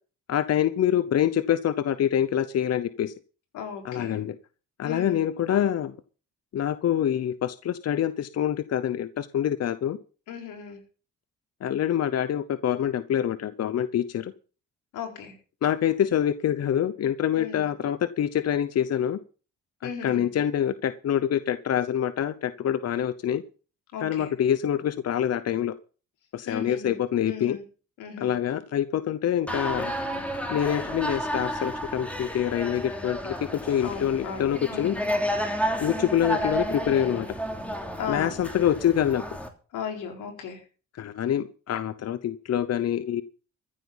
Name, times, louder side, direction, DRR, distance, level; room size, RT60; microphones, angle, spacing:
voice 1, 0.3-3.1 3.8-4.4 4.8-6.0 6.5-10.0 11.6-14.3 15.6-19.2 19.8-23.4 24.0-25.7 26.3-27.6 28.2-29.9 30.5-33.3 33.6-34.9 35.8-37.3 38.1-39.2 41.0-43.2, left 10 dB, 55° left, 14 dB, 0.9 m, -26 dB
voice 2, 3.5-4.2 4.8-5.2 10.3-10.8 14.9-15.3 17.4-17.7 19.8-20.3 23.9-24.3 26.5-27.0 27.3-27.6 28.0-28.3 33.8-35.1 38.0-38.5 39.7-40.6, left 6 dB, 85° left, 4 dB, 4.5 m, -36 dB
sound 1, 29.5-39.5, equal, 5° left, 3.1 m, -31 dB
14.5 x 8.1 x 7.3 m, 0.38 s
cardioid pair, 90°, 30 cm